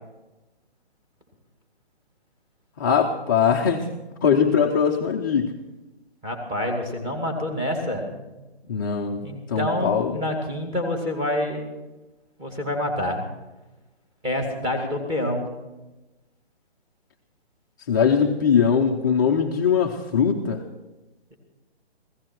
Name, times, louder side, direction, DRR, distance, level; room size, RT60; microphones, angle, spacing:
voice 1, 2.8-3.9 4.2-5.6 8.7-9.2 9.5-10.2 17.9-20.6, left 7 dB, 20° left, 1 dB, 0.5 m, -21 dB
voice 2, 6.2-8.2 9.2-11.6 12.4-13.3 14.2-15.5, left 1 dB, 15° right, 1 dB, 2.4 m, -27 dB
16.0 x 15.5 x 4.6 m, 1.1 s
hypercardioid pair, 150°, 32 cm